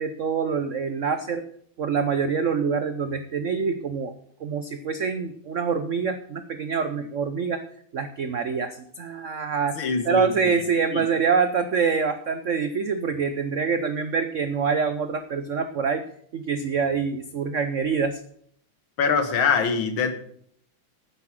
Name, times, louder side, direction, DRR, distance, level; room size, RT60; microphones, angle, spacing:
voice 1, 0.0-1.4 1.8-4.1 4.4-7.6 7.9-9.8 10.0-16.0 16.3-18.2, right 5 dB, 85° right, 9 dB, 0.6 m, -25 dB
voice 2, 9.8-10.6 10.9-11.0 19.0-20.1, left 5 dB, 75° left, 8 dB, 2.1 m, -24 dB
9.7 x 7.6 x 7.4 m, 0.65 s
omnidirectional pair, 2.3 m